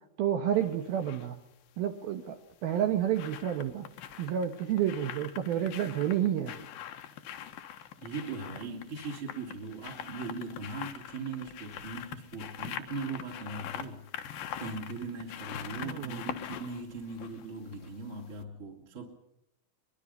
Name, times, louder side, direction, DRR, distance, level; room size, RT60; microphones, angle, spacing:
voice 1, 0.2-1.4 1.8-3.9 4.2-6.6 15.8-16.2, right 10 dB, 70° right, 2.5 m, -30 dB
sound 1, 0.5-1.3 2.5-18.0 18.4-18.5, left 10 dB, 65° left, 2.6 m, -43 dB
voice 2, 8.0-19.0, right 3 dB, 30° right, 3.0 m, -40 dB
23.5 x 23.0 x 5.5 m
omnidirectional pair, 5.4 m